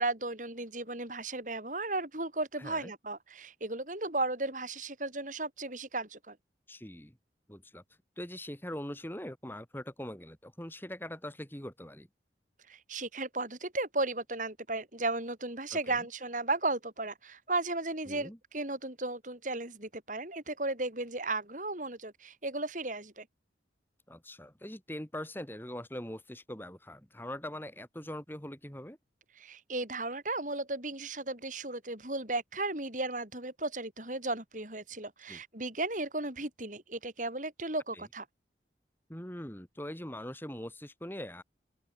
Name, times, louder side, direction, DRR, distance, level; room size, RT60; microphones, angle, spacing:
voice 1, 0.0-6.4 12.7-23.3 29.4-38.2, right 2 dB, 45° right, 6.4 m, -35 dB
voice 2, 2.6-2.9 6.7-7.2 7.5-7.8 8.2-12.1 15.7-16.0 18.1-18.4 24.1-29.0 35.3-35.4 37.9-38.1 39.1-41.4, left 1 dB, 10° left, 3.2 m, -42 dB
open air
head